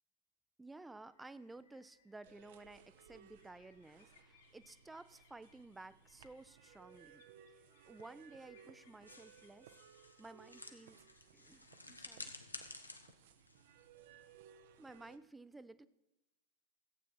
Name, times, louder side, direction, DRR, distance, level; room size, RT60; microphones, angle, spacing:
voice 1, 0.6-7.2 7.5-9.7 10.2-11.0 11.3-12.3 14.8-15.9, right 2 dB, 10° right, 15 dB, 0.5 m, -55 dB
sound 1, 1.0-13.4, left 6 dB, 65° left, 2.3 m, -72 dB
sound 2, 2.2-15.2, right 8 dB, 55° right, 0.7 m, -62 dB
sound 3, 9.1-14.4, left 2 dB, 85° left, 1.0 m, -53 dB
15.0 x 8.5 x 4.3 m, 0.97 s
figure-of-eight pair, 90°, 0 cm